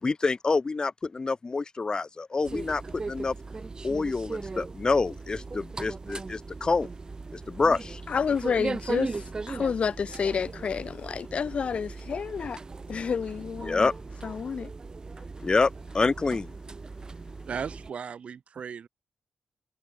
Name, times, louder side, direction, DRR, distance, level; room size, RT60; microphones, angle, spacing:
voice 1, 0.0-3.3 3.8-6.9 7.3-8.0 13.6-13.9 15.4-16.5, left 4 dB, 35° left, 2.7 m, -27 dB
sound 1, 2.4-17.9, right 3 dB, 35° right, 1.8 m, -38 dB
voice 2, 8.1-12.6 12.9-13.9 14.2-14.7, left 6 dB, 60° left, 4.1 m, -30 dB
voice 3, 17.5-18.9, right 7 dB, 65° right, 3.5 m, -36 dB
cardioid pair, 75°, 2 cm